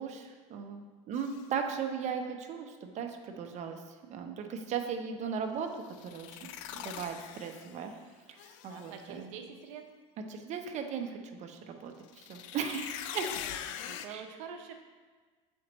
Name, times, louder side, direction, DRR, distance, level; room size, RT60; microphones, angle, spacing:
voice 1, 0.0-3.8 4.1-6.4 6.7-7.9 8.6-9.3 10.3-13.3 14.1-14.2, right 6 dB, 45° right, 5 dB, 0.7 m, -37 dB
sound 1, 1.1-1.4 5.8-7.9 8.4-9.0 12.0-14.1, left 10 dB, 80° left, 0.4 m, -42 dB
voice 2, 8.7-9.9 13.8-14.8, right 7 dB, 85° right, 5 dB, 0.7 m, -45 dB
7.2 x 4.4 x 3.0 m, 1.4 s
supercardioid pair, 100°, 16 cm